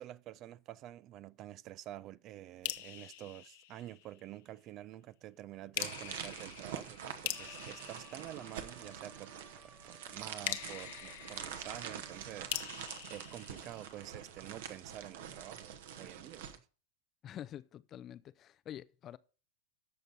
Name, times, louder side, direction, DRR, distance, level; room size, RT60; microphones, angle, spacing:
voice 1, 0.0-9.3 9.6-16.6, right 13 dB, 35° right, 0.4 m, -49 dB
sound 1, 2.6-4.4 5.7-9.1 10.4-14.3, left 15 dB, 50° left, 0.9 m, -44 dB
sound 2, 5.8-16.6, right 8 dB, 55° right, 1.3 m, -46 dB
Trumpet, 7.3-12.7, equal, 5° right, 1.5 m, -61 dB
voice 2, 17.2-19.2, left 11 dB, 30° left, 0.5 m, -47 dB
13.5 x 6.6 x 3.9 m
figure-of-eight pair, 90°, 0 cm